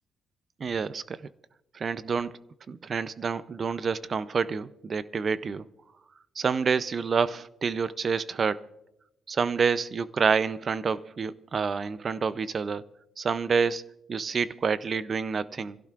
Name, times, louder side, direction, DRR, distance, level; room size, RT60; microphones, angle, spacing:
voice 1, 0.6-1.2 1.7-2.3 2.7-5.6 6.4-8.6 9.3-12.8 13.2-13.8 14.1-15.8, right 5 dB, 30° right, 0.5 m, -28 dB
26.5 x 16.5 x 2.5 m
cardioid pair, 170°, 0 cm